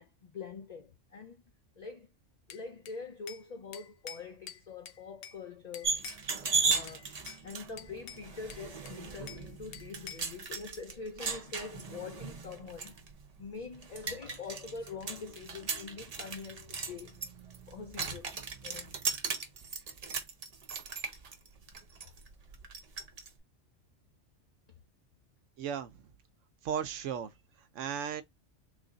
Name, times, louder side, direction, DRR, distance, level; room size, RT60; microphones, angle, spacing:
voice 1, 0.0-1.4 1.8-2.1 2.5-6.0 6.6-7.1 7.4-12.9 13.4-17.2 17.7-18.3 18.6-18.9, left 4 dB, 75° left, 0.3 m, -44 dB
Bell / Glass, 2.5-3.5 3.7-5.4 5.7-6.6 6.9-7.4 7.8-9.5 9.7-10.3, left 8 dB, 60° left, 0.7 m, -48 dB
sound 1, 5.8-23.3, right 4 dB, 40° right, 0.6 m, -37 dB
voice 2, 25.6-26.0 26.6-27.3 27.7-28.2, right 8 dB, 85° right, 0.9 m, -35 dB
3.3 x 2.5 x 3.8 m
omnidirectional pair, 1.3 m